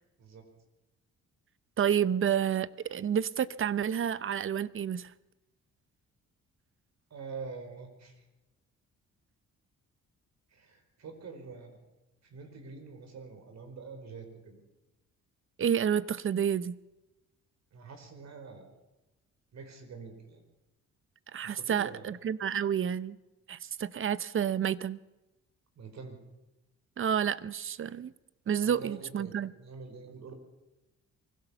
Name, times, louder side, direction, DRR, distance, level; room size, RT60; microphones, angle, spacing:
voice 1, 1.8-5.1 15.6-16.8 21.3-23.2 23.5-25.0 27.0-28.1 28.5-29.5, right 8 dB, 45° right, 0.8 m, -29 dB
voice 2, 7.1-8.2 10.5-11.8 12.2-14.6 17.7-18.7 19.5-20.4 21.4-22.1 25.7-26.2 28.6-30.3, right 4 dB, 60° right, 4.7 m, -45 dB
23.5 x 16.5 x 7.0 m
cardioid pair, 90°, 30 cm